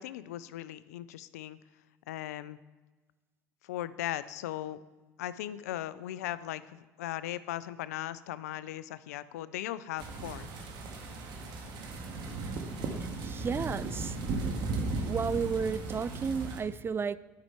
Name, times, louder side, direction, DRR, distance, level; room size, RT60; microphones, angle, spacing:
voice 1, 0.0-1.6 2.1-2.6 3.6-4.8 5.2-10.5, left 13 dB, 85° left, 0.4 m, -38 dB
sound 1, 10.0-16.6, right 3 dB, 60° right, 1.5 m, -36 dB
voice 2, 13.0-14.2 15.1-17.2, right 6 dB, 25° right, 0.4 m, -33 dB
11.0 x 5.6 x 4.5 m
hypercardioid pair, 75°, 8 cm